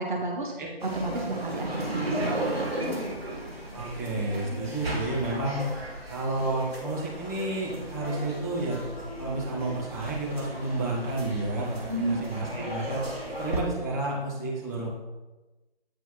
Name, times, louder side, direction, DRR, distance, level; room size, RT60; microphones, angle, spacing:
voice 1, 0.0-0.5 0.8-3.2 11.9-12.2 12.6-12.7, right 1 dB, 50° right, 0 dB, 1.3 m, -32 dB
sound 1, 0.8-13.6, right 1 dB, 75° right, 2.1 m, -35 dB
voice 2, 3.7-5.8 6.1-8.8 9.2-14.9, right 2 dB, 20° right, -5 dB, 1.5 m, -31 dB
8.7 x 5.1 x 4.1 m, 1.1 s
figure-of-eight pair, 150°, 31 cm